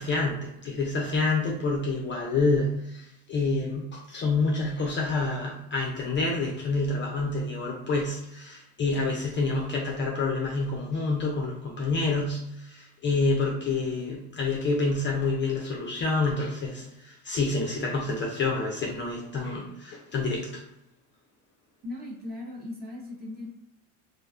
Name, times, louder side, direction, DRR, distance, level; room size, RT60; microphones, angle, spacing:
voice 1, 0.0-20.6, left 3 dB, 30° left, -1 dB, 0.4 m, -28 dB
voice 2, 21.8-23.5, left 2 dB, 25° right, -1 dB, 0.6 m, -38 dB
2.4 x 2.1 x 2.4 m, 0.82 s
supercardioid pair, 100°, 40 cm